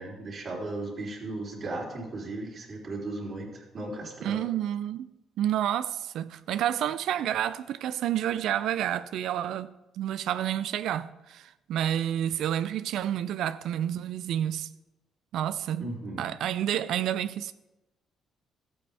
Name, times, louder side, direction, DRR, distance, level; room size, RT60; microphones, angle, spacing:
voice 1, 0.0-4.4 15.8-16.2, right 2 dB, 50° right, 3.4 m, -36 dB
voice 2, 4.2-5.1 5.4-14.7 15.3-15.9 16.2-17.5, right 11 dB, 80° right, 0.4 m, -29 dB
13.5 x 8.6 x 3.5 m
cardioid pair, 90°, 0 cm